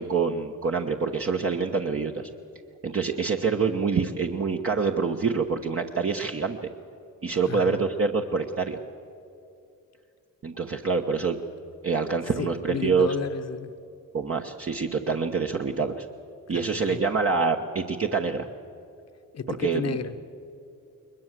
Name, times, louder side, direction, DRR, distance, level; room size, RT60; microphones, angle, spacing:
voice 1, 0.0-2.3 2.8-6.7 7.2-8.8 10.4-11.4 11.8-13.1 14.1-16.1 16.5-18.5 19.5-20.0, right 5 dB, 40° right, 2 dB, 1.1 m, -26 dB
voice 2, 7.4-7.9 12.4-13.7 16.5-17.0 19.3-20.4, left 6 dB, 45° left, 9 dB, 1.0 m, -33 dB
21.5 x 21.0 x 7.5 m, 2.6 s
cardioid pair, 75°, 35 cm